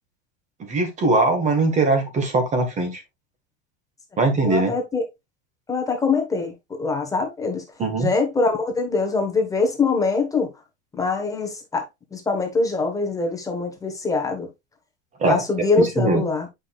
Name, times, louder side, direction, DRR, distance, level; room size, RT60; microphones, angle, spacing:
voice 1, 0.6-3.0 4.2-4.7 7.8-8.1 15.2-15.4 15.8-16.2, right 2 dB, 20° right, 1.8 m, -21 dB
voice 2, 4.4-5.0 5.7-7.6 8.0-10.5 11.0-11.8 12.1-14.5 15.3-16.5, left 3 dB, 10° left, 1.3 m, -23 dB
8.5 x 5.4 x 2.4 m
cardioid pair, 165°, 32 cm